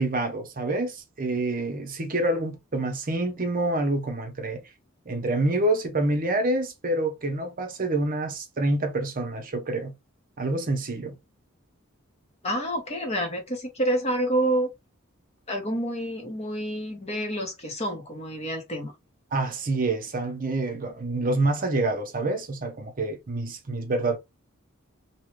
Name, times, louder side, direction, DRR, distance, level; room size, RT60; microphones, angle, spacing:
voice 1, 0.0-4.6 5.1-9.9 10.4-11.2 19.3-24.2, right 2 dB, 40° right, 0.7 m, -27 dB
voice 2, 12.4-14.7 15.5-18.9, right 1 dB, 30° left, 1.0 m, -28 dB
2.9 x 2.4 x 3.1 m
head